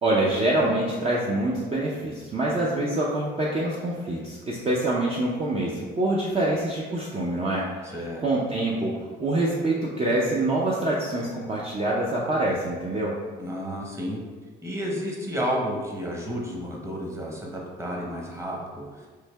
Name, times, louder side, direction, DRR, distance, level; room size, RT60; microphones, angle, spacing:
voice 1, 0.0-7.9 8.2-13.2, right 1 dB, 30° right, -5 dB, 0.5 m, -25 dB
voice 2, 7.8-8.2 13.4-14.2 14.6-19.1, equal, 15° right, -3 dB, 0.9 m, -31 dB
3.2 x 2.7 x 3.3 m, 1.5 s
cardioid pair, 90°, 20 cm